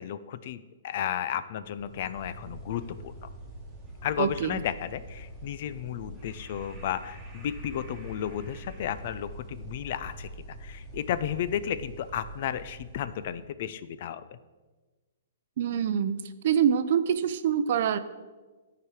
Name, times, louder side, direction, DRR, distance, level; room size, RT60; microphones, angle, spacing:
voice 1, 0.0-3.1 4.0-10.3 10.6-14.2, left 10 dB, 45° left, 14 dB, 0.4 m, -33 dB
sound 1, 1.6-13.5, right 1 dB, 5° right, 1.7 m, -44 dB
voice 2, 4.2-4.6 15.6-16.2 16.4-18.0, right 8 dB, 50° right, 12 dB, 0.5 m, -25 dB
12.0 x 4.9 x 4.9 m, 1.3 s
hypercardioid pair, 160°, 0 cm